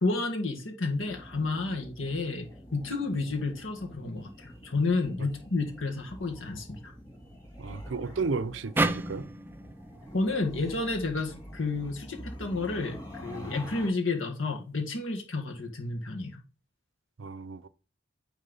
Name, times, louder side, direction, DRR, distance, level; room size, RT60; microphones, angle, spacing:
voice 1, 0.0-6.9 10.1-16.4, left 3 dB, 90° left, 1.9 m, -31 dB
sound 1, 0.9-13.9, equal, 20° left, 3.0 m, -46 dB
voice 2, 7.6-9.3 17.2-17.7, right 4 dB, 75° right, 0.6 m, -33 dB
sound 2, 8.8-12.0, right 2 dB, 10° right, 0.4 m, -33 dB
9.3 x 3.6 x 5.5 m
head